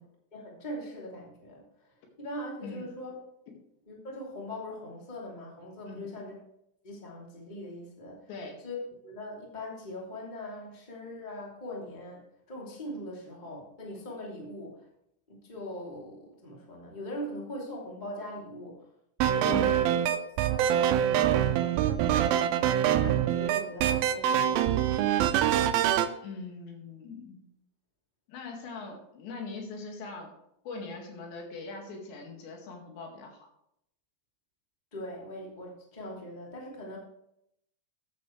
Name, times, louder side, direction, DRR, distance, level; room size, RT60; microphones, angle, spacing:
voice 1, 0.3-1.6 2.2-3.2 3.9-6.3 6.8-8.2 8.6-8.8 9.0-12.2 12.5-14.9 15.3-18.8 19.3-20.1 20.5-24.9 34.9-37.0, left 1 dB, 10° left, -3 dB, 2.3 m, -41 dB
voice 2, 2.6-2.9 5.9-6.2 8.3-8.6 19.5-19.7 26.2-27.4 28.3-30.3 30.7-33.4, left 3 dB, 80° left, 1 dB, 4.3 m, -41 dB
sound 1, 19.2-26.1, right 10 dB, 90° right, 2.1 m, -25 dB
14.0 x 10.0 x 3.3 m, 0.77 s
omnidirectional pair, 5.0 m